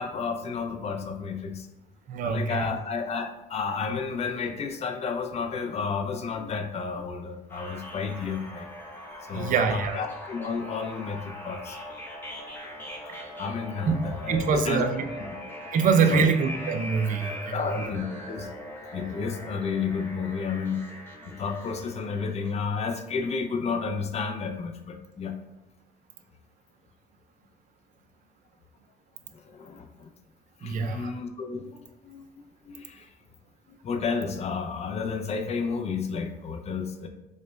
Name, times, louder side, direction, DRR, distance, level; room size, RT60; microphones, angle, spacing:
voice 1, 0.0-1.7 2.2-8.7 9.2-11.8 13.4-14.9 15.2-15.3 16.1-16.3 17.5-18.5 18.9-20.8 21.3-25.4 29.3-30.1 30.6-32.3 32.6-33.1 33.8-37.1, left 5 dB, 40° left, 5 dB, 0.4 m, -31 dB
voice 2, 2.1-2.7 9.3-10.0 13.9-14.0 14.3-15.1 15.7-17.7 30.6-31.1, right 5 dB, 55° right, 7 dB, 0.4 m, -24 dB
sound 1, 7.5-22.5, left 1 dB, 10° left, 0.8 m, -41 dB
5.0 x 2.1 x 2.2 m, 0.96 s
cardioid pair, 95°, 17 cm